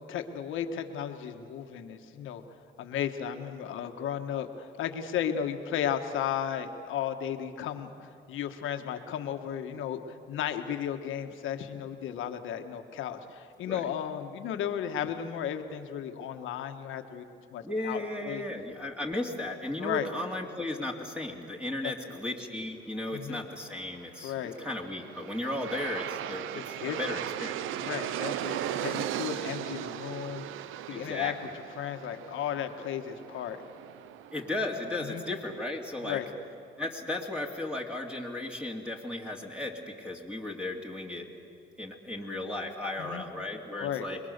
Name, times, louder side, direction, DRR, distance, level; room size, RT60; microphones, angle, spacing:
voice 1, 0.1-2.4 2.8-18.4 19.8-20.1 21.8-22.1 23.1-23.4 24.2-24.6 26.5-27.0 27.8-31.3 31.7-33.6 35.0-35.2 36.0-36.3 43.0-43.2 43.8-44.1, left 9 dB, 85° left, 6 dB, 1.5 m, -34 dB
voice 2, 17.6-28.0 30.9-31.5 34.3-36.2 36.8-41.3 41.8-44.2, left 2 dB, 5° right, 0 dB, 2.5 m, -35 dB
Aircraft, 24.6-35.6, right 12 dB, 90° right, 0.6 m, -37 dB
26.0 x 21.5 x 6.8 m, 2.5 s
cardioid pair, 90°, 20 cm